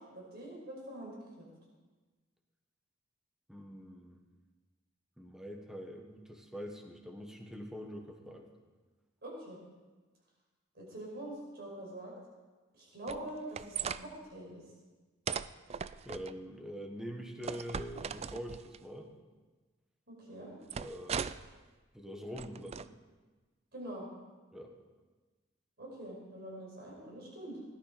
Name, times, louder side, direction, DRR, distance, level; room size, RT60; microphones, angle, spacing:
voice 1, 0.0-1.5 9.2-9.6 10.8-12.1 12.7-14.6 20.1-20.5 23.7-24.1 25.8-27.6, right 1 dB, 55° right, -3 dB, 5.4 m, -44 dB
voice 2, 3.5-4.2 5.2-8.5 16.0-19.1 20.4-20.5 20.8-21.4 21.9-22.9 24.5-24.7, equal, 5° right, 2 dB, 1.4 m, -44 dB
sound 1, 13.1-14.0 15.3-16.3 17.4-18.8 20.7-21.5 22.4-22.9, right 7 dB, 30° right, 0.3 m, -38 dB
17.0 x 12.0 x 5.1 m, 1.3 s
head